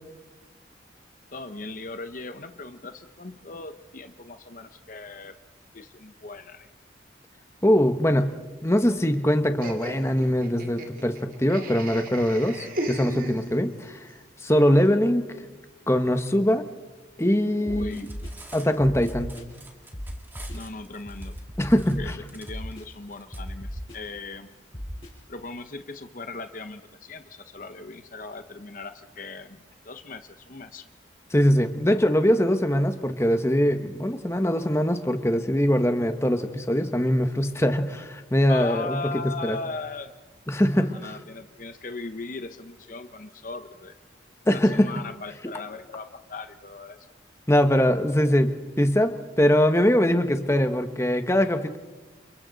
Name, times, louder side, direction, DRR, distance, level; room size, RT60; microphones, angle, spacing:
voice 1, 1.3-5.4 5.7-6.7 14.6-14.8 17.5-18.1 20.5-21.4 21.9-24.5 25.3-30.9 38.5-40.1 40.8-43.9 44.5-47.1, left 3 dB, 45° left, 9 dB, 0.8 m, -38 dB
voice 2, 7.6-8.3 8.6-14.1 14.4-15.2 15.9-16.6 17.2-18.1 18.5-19.3 21.6-22.1 31.3-39.0 39.4-39.6 40.5-41.1 44.5-44.9 47.5-51.8, equal, 15° left, 7 dB, 1.1 m, -22 dB
Laughter, 9.6-13.9, right 1 dB, 45° right, 2.4 m, -36 dB
sound 1, 17.7-17.8 18.1-18.3 18.8-19.4 19.9-20.0 20.3-20.6 21.1-22.0 22.5-22.8 23.3-24.0 24.7-25.1, equal, 30° left, 6.7 m, -36 dB
Cutlery silverware, 17.8-23.4, right 2 dB, 10° right, 2.1 m, -49 dB
29.5 x 29.0 x 4.1 m, 1.2 s
head